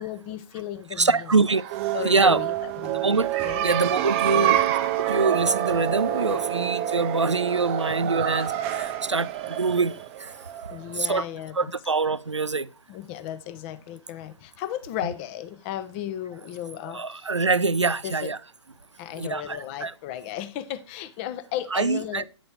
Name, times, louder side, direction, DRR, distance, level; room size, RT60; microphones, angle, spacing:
voice 1, 0.0-1.1 1.9-3.0 3.4-3.7 4.3-4.6 10.7-11.6 12.9-17.2 18.0-18.3 19.0-22.2, left 11 dB, 25° left, 0.6 m, -34 dB
voice 2, 1.0-1.6 2.0-2.4 3.0-3.3 3.6-4.6 5.1-8.5 8.8-9.9 11.0-11.3 11.5-12.7 16.9-18.4 19.2-19.9 21.7-22.2, right 4 dB, 90° right, 0.4 m, -24 dB
sound 1, 1.5-11.0, right 12 dB, 25° right, 0.5 m, -27 dB
9.1 x 4.1 x 4.7 m
figure-of-eight pair, 120°, 15 cm